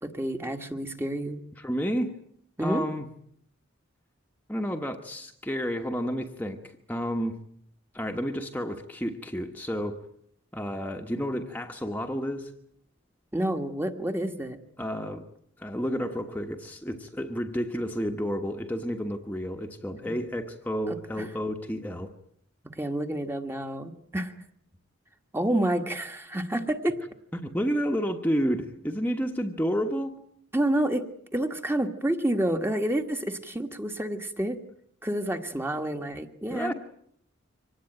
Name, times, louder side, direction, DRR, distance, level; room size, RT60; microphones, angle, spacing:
voice 1, 0.0-1.4 2.6-2.9 13.3-14.6 20.1-20.2 20.9-21.2 22.7-24.3 25.3-27.0 30.5-34.6 35.0-36.7, right 1 dB, 10° right, 6 dB, 1.5 m, -29 dB
voice 2, 1.6-2.1 2.6-3.1 4.5-7.4 7.9-10.0 10.5-12.5 14.8-15.2 15.6-22.1 27.3-30.1 36.5-36.7, equal, 10° left, 3 dB, 1.2 m, -30 dB
25.0 x 19.0 x 8.9 m, 0.68 s
head